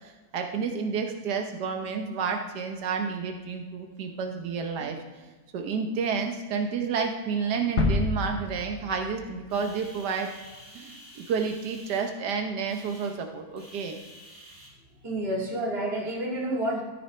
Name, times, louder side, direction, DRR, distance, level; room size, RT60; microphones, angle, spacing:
voice 1, 0.0-10.3 10.7-14.0, right 5 dB, 90° right, 4 dB, 1.5 m, -30 dB
sound 1, 7.8-9.7 10.1-10.2, left 3 dB, 50° left, 1.3 m, -29 dB
sound 2, 9.5-14.7, equal, 10° left, 2.5 m, -50 dB
voice 2, 15.0-16.8, right 1 dB, 40° right, -3 dB, 2.3 m, -29 dB
13.5 x 10.5 x 3.2 m, 1.3 s
omnidirectional pair, 1.7 m